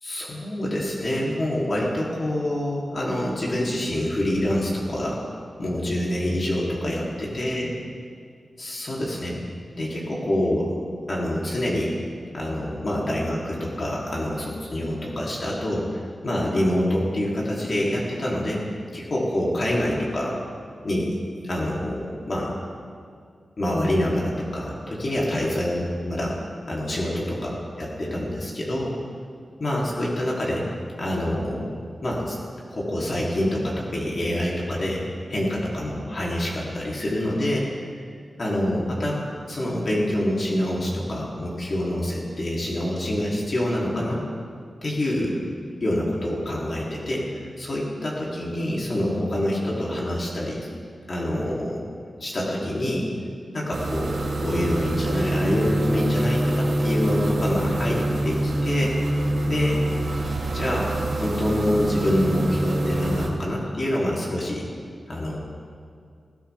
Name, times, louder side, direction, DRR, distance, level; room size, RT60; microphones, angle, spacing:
voice 1, 0.0-5.2 5.6-7.7 8.6-9.4 9.8-10.7 11.1-11.9 12.3-20.3 20.8-21.1 21.4-22.5 23.6-26.3 26.7-27.5 27.8-28.9 29.6-30.7 31.0-31.8 32.0-32.4 32.7-37.7 38.4-39.2 39.5-44.2 44.8-45.4 45.8-50.7 51.1-51.8 52.2-53.1 53.5-59.1 59.5-59.8 60.5-64.6 65.1-65.4, left 1 dB, 50° left, -5 dB, 3.1 m, -26 dB
sound 1, 53.7-63.3, right 1 dB, 90° right, 2.8 m, -25 dB
19.5 x 16.5 x 3.5 m, 2.2 s
wide cardioid pair, 105°, 0 cm